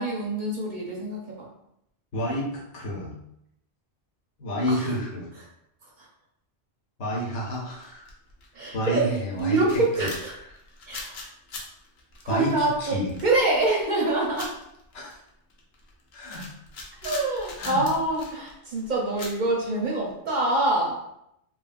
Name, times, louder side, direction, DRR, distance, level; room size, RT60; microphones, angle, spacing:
voice 1, 0.0-1.5 4.7-4.8 8.5-10.4 10.9-11.1 12.3-14.5 17.0-21.2, right 2 dB, 50° right, -4 dB, 0.8 m, -25 dB
voice 2, 2.1-3.2 4.4-5.3 7.0-8.1 8.7-10.1 10.9-11.0 12.3-13.1 14.9-15.2 16.1-16.5 17.5-17.9, equal, 85° left, -3 dB, 1.1 m, -30 dB
sound 1, 7.5-8.5 8.7-20.1, left 3 dB, 70° left, 0.8 m, -42 dB
3.1 x 2.2 x 2.5 m, 0.77 s
omnidirectional pair, 1.2 m